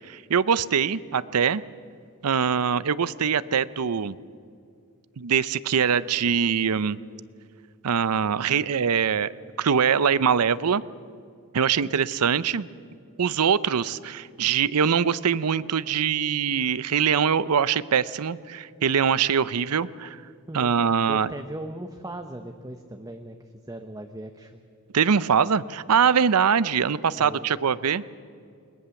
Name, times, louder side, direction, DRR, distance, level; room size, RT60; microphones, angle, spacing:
voice 1, 0.1-1.6 2.2-4.2 5.2-7.0 7.8-9.3 9.6-10.8 11.5-12.7 13.2-20.2 20.5-21.3 24.9-28.0, right 7 dB, 85° right, 18 dB, 0.6 m, -23 dB
voice 2, 21.1-23.4 23.7-24.6 27.2-27.5, right 1 dB, 15° right, 6 dB, 0.9 m, -38 dB
21.0 x 21.0 x 7.1 m, 2.3 s
head